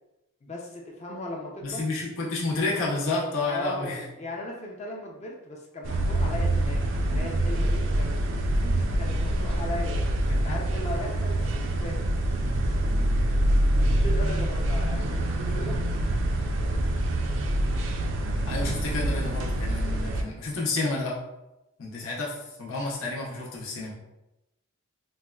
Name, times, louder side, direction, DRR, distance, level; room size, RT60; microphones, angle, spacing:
voice 1, 0.4-1.8 3.5-12.1 12.3-12.6 13.9-15.8, left 1 dB, 30° left, -1 dB, 0.4 m, -38 dB
voice 2, 1.6-4.0 10.3-10.6 12.9-13.3 18.5-21.2 21.8-23.9, left 3 dB, 70° left, -4 dB, 0.6 m, -30 dB
sound 1, 5.8-20.2, right 1 dB, 60° right, 0.3 m, -25 dB
4.1 x 2.1 x 2.2 m, 0.94 s
head